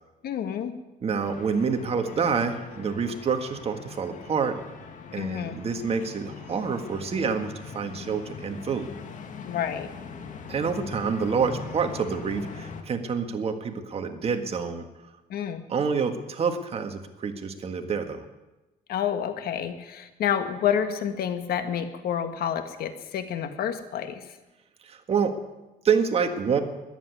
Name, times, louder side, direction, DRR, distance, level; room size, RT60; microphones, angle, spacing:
voice 1, 0.2-0.8 5.2-5.6 9.4-9.9 15.3-15.6 18.9-24.2, left 9 dB, 65° left, 9 dB, 1.6 m, -29 dB
voice 2, 1.0-4.6 5.1-8.9 10.5-14.8 15.7-18.2 24.8-25.4 25.8-26.6, right 6 dB, 35° right, 5 dB, 1.7 m, -27 dB
sound 1, 1.2-12.8, left 5 dB, 50° left, 2.1 m, -41 dB
14.5 x 10.5 x 9.7 m, 1.1 s
cardioid pair, 110°, 17 cm